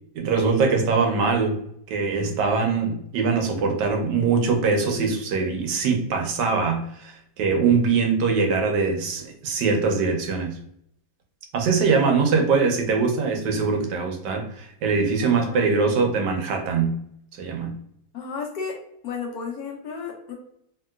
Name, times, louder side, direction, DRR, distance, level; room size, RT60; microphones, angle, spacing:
voice 1, 0.1-1.6 1.9-10.6 11.5-16.9 17.4-17.7, right 4 dB, 85° right, 3 dB, 1.3 m, -22 dB
voice 2, 15.2-15.7 18.1-18.8 19.0-20.4, left 5 dB, 70° left, 2 dB, 1.1 m, -33 dB
3.0 x 2.8 x 2.2 m, 0.71 s
omnidirectional pair, 1.8 m